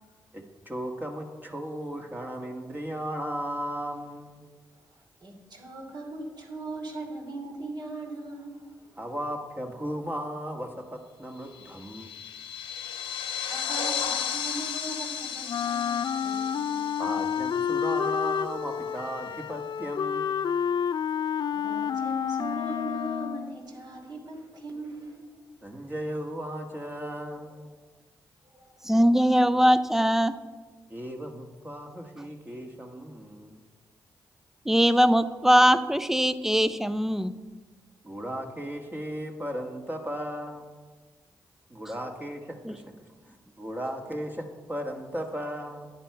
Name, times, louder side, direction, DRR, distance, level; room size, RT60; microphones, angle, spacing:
voice 1, 0.3-4.4 9.0-12.1 17.0-20.4 25.6-27.7 30.9-33.6 38.0-40.7 41.7-42.8 43.3-45.9, equal, 20° right, 1 dB, 1.4 m, -36 dB
voice 2, 5.2-8.7 13.1-16.7 21.1-21.2 21.5-25.3 28.5-28.8, right 2 dB, 55° right, 1 dB, 2.7 m, -39 dB
sound 1, 11.5-18.4, left 7 dB, 90° left, 1.0 m, -34 dB
Wind instrument woodwind instrument, 15.5-23.6, left 7 dB, 55° left, 0.4 m, -29 dB
voice 3, 28.8-30.3 34.7-37.3 42.6-42.7, equal, 5° right, 13 dB, 0.6 m, -21 dB
10.0 x 9.3 x 4.6 m, 1.4 s
supercardioid pair, 50°, 8 cm